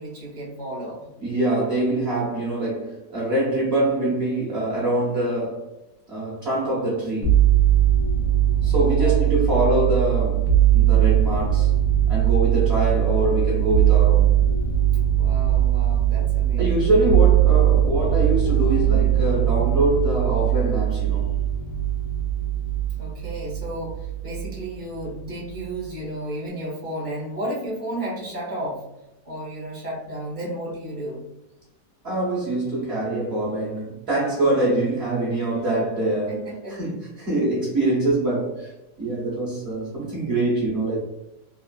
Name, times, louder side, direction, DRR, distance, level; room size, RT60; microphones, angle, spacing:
voice 1, 0.0-1.1 8.6-9.4 15.1-17.1 22.9-28.8 29.2-31.2 34.4-34.5 36.3-36.9, right 1 dB, 15° left, 0.5 m, -33 dB
voice 2, 1.2-5.7 6.1-7.4 8.6-11.7 12.1-14.4 16.6-21.3 32.0-38.7 39.0-41.0, right 1 dB, 50° right, 0.8 m, -24 dB
sound 1, 7.2-24.7 25.0-25.8, right 11 dB, 90° left, 1.2 m, -20 dB
3.2 x 2.4 x 2.2 m
omnidirectional pair, 1.9 m